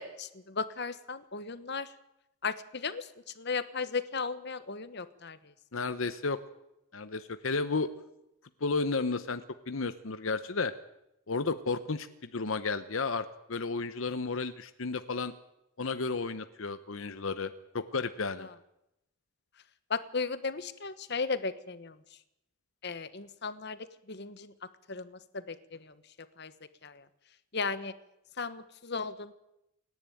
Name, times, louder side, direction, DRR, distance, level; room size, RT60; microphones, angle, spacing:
voice 1, 0.0-1.9 2.4-3.1 3.4-5.4 18.4-18.5 19.9-21.9 22.8-23.8 24.1-24.5 24.9-25.9 26.4-26.5 26.8-27.0 27.5-27.9 28.4-29.3, left 4 dB, 55° left, 13 dB, 1.3 m, -36 dB
voice 2, 5.7-6.4 6.9-7.9 8.6-10.7 11.3-12.1 12.3-15.3 15.8-18.5, left 4 dB, 70° left, 11 dB, 0.9 m, -32 dB
28.5 x 11.0 x 9.3 m, 0.86 s
head